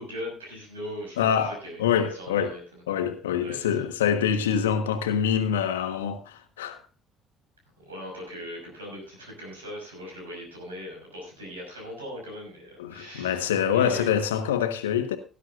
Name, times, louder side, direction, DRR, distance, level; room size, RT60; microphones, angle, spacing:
voice 1, 0.0-2.8 3.4-3.9 7.8-14.1, left 1 dB, 85° right, 5.7 m, -40 dB
voice 2, 1.2-2.5 2.9-6.8 12.8-15.2, left 8 dB, 80° left, 1.3 m, -25 dB
18.5 x 11.0 x 2.5 m
figure-of-eight pair, 50°, 0 cm